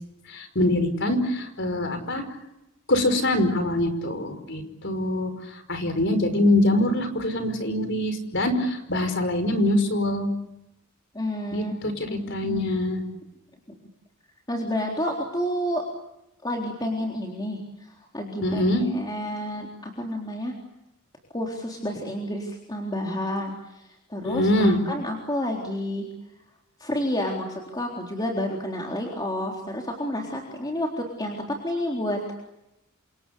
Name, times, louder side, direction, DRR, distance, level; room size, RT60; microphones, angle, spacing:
voice 1, 0.3-2.2 2.9-5.3 5.7-10.3 11.5-13.0 18.4-18.8 24.2-24.8, left 1 dB, 55° left, 8 dB, 5.3 m, -24 dB
voice 2, 11.1-11.7 12.1-12.2 12.4-12.7 13.7-13.8 14.5-15.8 16.4-20.5 21.3-26.1 26.8-32.3, left 1 dB, 20° left, -1 dB, 3.8 m, -30 dB
29.0 x 27.0 x 7.0 m, 0.90 s
head